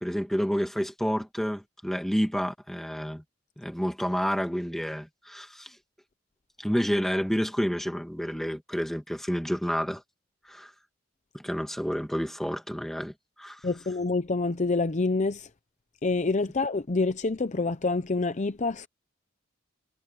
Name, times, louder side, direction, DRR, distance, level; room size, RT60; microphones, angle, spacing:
voice 1, 0.0-3.2 3.6-5.7 6.6-10.0 10.5-10.7 11.3-13.1 13.4-13.6, equal, ahead, 2.2 m, -29 dB
voice 2, 13.6-15.5 16.0-18.9, left 3 dB, 35° left, 0.7 m, -27 dB
head